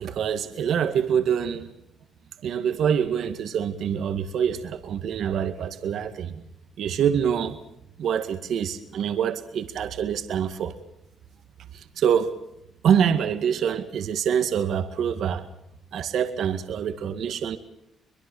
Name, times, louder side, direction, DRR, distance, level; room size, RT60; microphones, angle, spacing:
voice 1, 0.0-1.7 2.4-6.4 6.8-7.6 8.0-10.7 12.0-12.3 12.8-15.5 15.9-17.6, right 8 dB, 75° right, 9 dB, 2.0 m, -25 dB
23.5 x 22.0 x 7.2 m, 0.80 s
cardioid pair, 80°, 0 cm